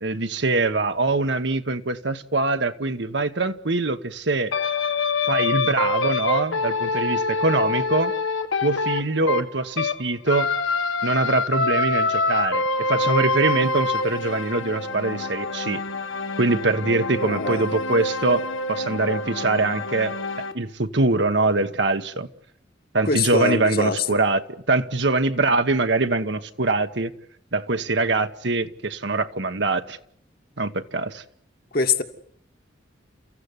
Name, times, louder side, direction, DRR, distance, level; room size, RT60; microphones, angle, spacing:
voice 1, 0.0-4.5 5.3-8.1 8.6-10.5 11.0-15.8 16.4-20.1 20.5-22.3 22.9-27.1 27.5-30.0 30.6-31.2, right 3 dB, 60° right, 1.2 m, -23 dB
sound 1, 4.5-10.0 10.3-20.5, left 3 dB, 85° left, 1.7 m, -26 dB
voice 2, 17.2-17.7 23.1-24.0 31.7-32.0, left 4 dB, 50° left, 1.8 m, -23 dB
30.0 x 15.0 x 9.7 m
head